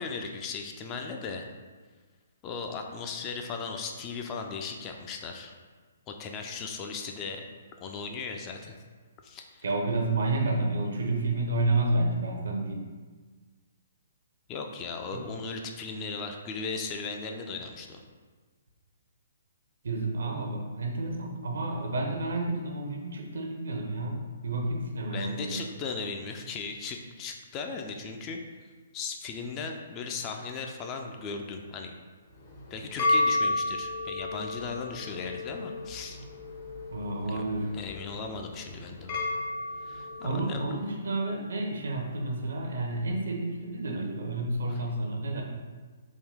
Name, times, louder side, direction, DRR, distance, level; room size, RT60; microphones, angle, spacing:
voice 1, 0.0-1.5 2.4-5.5 6.1-7.4 7.8-8.8 9.2-9.6 14.5-18.0 25.1-28.4 28.9-31.9 32.7-36.2 37.3-37.4 37.7-39.2 39.8-40.6 44.7-44.8, left 4 dB, 25° left, 3 dB, 0.3 m, -37 dB
voice 2, 9.6-12.9 15.1-15.2 19.8-25.6 36.9-37.7 40.2-45.4, right 2 dB, 75° right, 2 dB, 0.6 m, -30 dB
sound 1, 32.4-40.9, left 2 dB, 45° left, 0.7 m, -32 dB
3.6 x 2.2 x 3.4 m, 1.4 s
hypercardioid pair, 135°, 0 cm